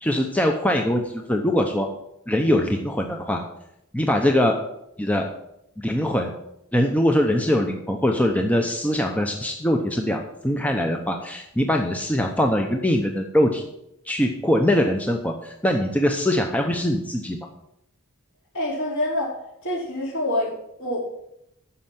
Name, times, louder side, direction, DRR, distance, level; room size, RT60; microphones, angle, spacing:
voice 1, 0.0-1.9 2.3-3.4 3.9-4.5 5.0-5.2 5.8-6.3 6.7-13.7 14.1-17.4, left 1 dB, 5° left, 3 dB, 0.8 m, -22 dB
voice 2, 18.5-19.4 19.6-20.5 20.8-21.0, left 1 dB, 60° left, -4 dB, 4.4 m, -26 dB
9.9 x 6.6 x 7.4 m, 0.80 s
head